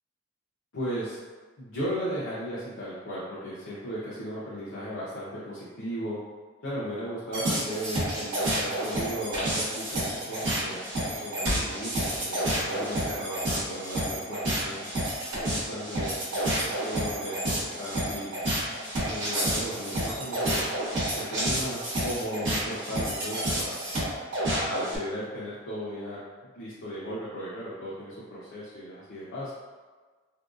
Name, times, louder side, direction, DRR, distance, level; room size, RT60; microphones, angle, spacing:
voice 1, 0.7-1.2 1.6-6.2 6.6-14.8 15.4-18.3 19.1-20.7 21.2-23.8 24.5-26.2 26.5-29.5, equal, 70° left, -9 dB, 0.6 m, -36 dB
sound 1, 7.3-25.0, right 1 dB, 70° right, 1.0 m, -29 dB
2.6 x 2.2 x 2.4 m, 1.4 s
head